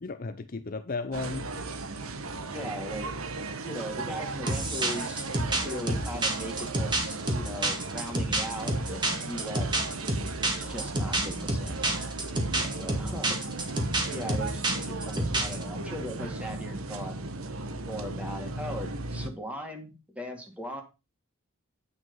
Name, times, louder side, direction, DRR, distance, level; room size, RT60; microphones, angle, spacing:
voice 1, 0.0-1.6 12.6-12.8, left 3 dB, 45° left, 0.6 m, -35 dB
sound 1, 1.1-19.3, right 3 dB, 90° right, 1.2 m, -36 dB
voice 2, 2.5-3.1 3.6-9.7 10.4-12.0 12.8-13.4 14.1-17.2 17.8-20.8, equal, 5° right, 2.2 m, -39 dB
sound 2, 4.5-15.6, right 1 dB, 20° right, 2.0 m, -29 dB
9.5 x 5.9 x 5.3 m
head